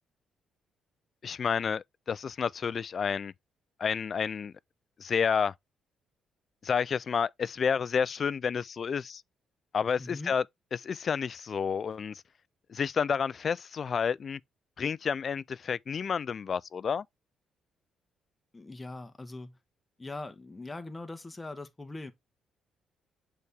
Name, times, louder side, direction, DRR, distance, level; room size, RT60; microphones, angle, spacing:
voice 1, 1.2-3.3 3.8-4.5 5.0-5.5 6.6-9.2 9.7-10.4 10.7-12.2 12.7-14.4 14.8-17.0, left 6 dB, 45° left, 0.3 m, -30 dB
voice 2, 10.0-10.3 18.5-19.6 20.0-22.1, left 2 dB, 15° left, 1.1 m, -41 dB
6.6 x 4.1 x 3.5 m
cardioid pair, 90°, 0 cm